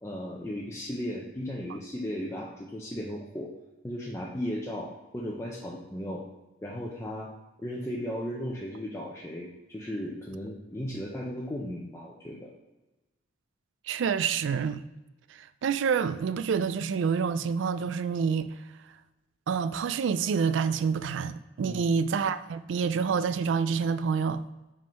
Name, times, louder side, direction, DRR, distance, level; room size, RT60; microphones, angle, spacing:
voice 1, 0.0-3.5 3.8-6.2 6.6-7.3 7.6-12.5 21.6-21.8, equal, 15° left, 0.6 m, -36 dB
voice 2, 13.9-14.8 15.3-18.5 19.5-24.4, right 6 dB, 75° right, 0.3 m, -27 dB
5.3 x 3.7 x 5.2 m
head